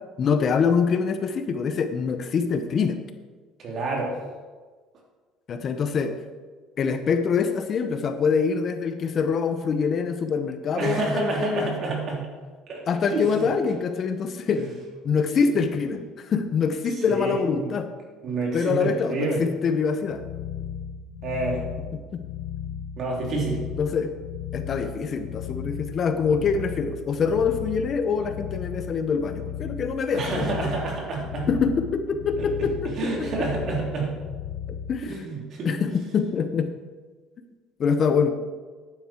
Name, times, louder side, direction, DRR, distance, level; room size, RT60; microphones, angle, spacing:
voice 1, 0.2-3.0 5.5-6.2 6.8-11.7 12.9-14.6 15.0-17.9 18.5-20.2 22.1-22.2 23.8-24.1 24.5-30.7 31.5-33.5 34.9-35.1 35.6-36.7 37.8-38.3, left 5 dB, 45° left, 8 dB, 1.0 m, -25 dB
voice 2, 3.6-4.2 10.7-12.3 12.7-13.4 14.5-14.7 17.1-17.7 18.2-19.4 21.2-21.6 23.0-23.6 30.1-31.5 32.4-34.1 35.1-35.7, right 3 dB, 50° right, -1 dB, 3.5 m, -28 dB
sound 1, 20.0-35.0, left 9 dB, 80° left, 0.8 m, -36 dB
11.0 x 9.4 x 4.5 m, 1.4 s
cardioid pair, 105°, 0 cm